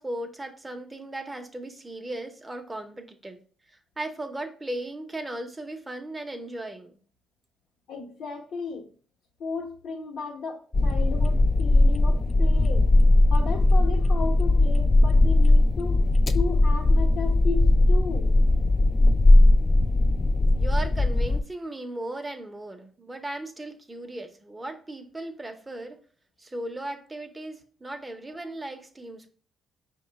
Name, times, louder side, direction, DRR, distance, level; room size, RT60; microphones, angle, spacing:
voice 1, 0.0-3.4 4.0-7.0 20.5-26.0 26.4-29.3, right 1 dB, 15° right, 6 dB, 0.6 m, -37 dB
voice 2, 7.9-8.9 9.4-12.9 13.3-16.1 16.3-18.3, left 4 dB, 70° left, -2 dB, 0.9 m, -35 dB
sound 1, 10.7-21.4, left 2 dB, 30° left, 0.3 m, -19 dB
5.2 x 2.2 x 3.9 m, 0.42 s
cardioid pair, 90°, 0 cm